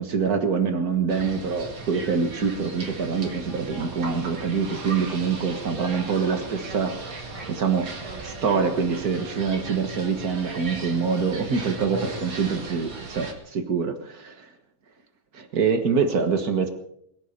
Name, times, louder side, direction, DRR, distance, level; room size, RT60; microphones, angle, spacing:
voice 1, 0.0-7.9 8.2-14.5 15.3-16.7, right 5 dB, 55° right, 7 dB, 1.0 m, -25 dB
sound 1, 1.1-13.3, right 3 dB, 35° right, 2.6 m, -37 dB
22.0 x 12.0 x 5.3 m, 0.74 s
omnidirectional pair, 3.9 m